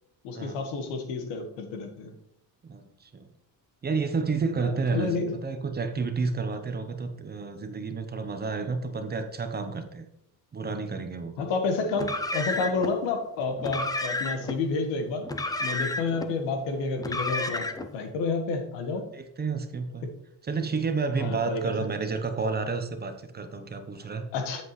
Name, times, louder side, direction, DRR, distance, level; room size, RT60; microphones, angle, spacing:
voice 1, 0.2-2.1 4.6-5.3 11.4-15.3 15.6-17.7 17.9-19.1 21.2-21.7 24.3-24.6, left 4 dB, 85° left, 5 dB, 1.6 m, -30 dB
voice 2, 2.7-3.3 3.8-10.1 10.5-11.5 19.1-20.1 20.4-24.2, right 4 dB, 25° right, 7 dB, 0.8 m, -30 dB
Car, 11.9-12.9 13.6-14.6 15.2-16.3 17.0-17.9, left 2 dB, 10° left, 0.4 m, -31 dB
8.3 x 7.8 x 3.1 m, 0.80 s
cardioid pair, 125°, 42 cm